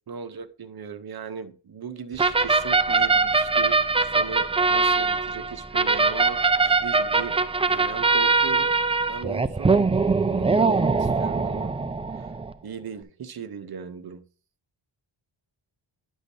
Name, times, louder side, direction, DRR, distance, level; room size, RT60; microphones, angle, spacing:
voice 1, 0.1-7.4 7.7-8.8 9.1-9.9 10.3-11.7 12.1-12.4 12.6-14.2, right 6 dB, 50° right, 10 dB, 0.9 m, -37 dB
sound 1, 2.2-12.5, right 4 dB, 15° right, 0.3 m, -22 dB
9.9 x 6.4 x 2.7 m, 0.38 s
wide cardioid pair, 90°, 47 cm